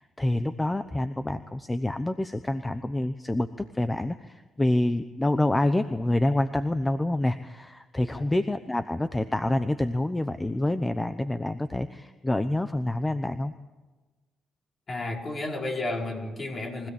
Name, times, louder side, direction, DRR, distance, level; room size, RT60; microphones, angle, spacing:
voice 1, 0.0-13.5, left 1 dB, 15° left, 11 dB, 0.9 m, -27 dB
voice 2, 14.9-16.9, left 2 dB, 35° left, 1 dB, 4.6 m, -32 dB
24.0 x 16.5 x 8.5 m, 1.2 s
cardioid pair, 90°, 0 cm